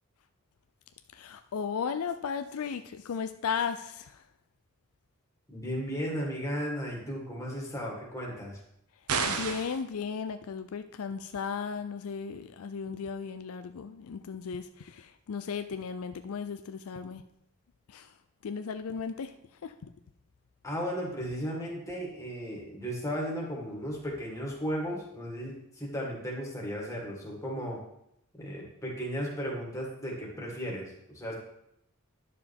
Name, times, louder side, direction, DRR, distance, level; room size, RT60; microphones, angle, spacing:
voice 1, 1.1-4.2 9.2-17.2 17.9-18.1 18.4-19.3 19.6-19.9, left 6 dB, 70° left, 9 dB, 0.4 m, -35 dB
voice 2, 5.5-8.6 20.6-27.8 28.4-31.3, equal, 15° left, -3 dB, 2.0 m, -35 dB
sound 1, 9.1-9.8, right 5 dB, 85° right, 0.8 m, -30 dB
10.0 x 6.7 x 3.5 m, 0.78 s
head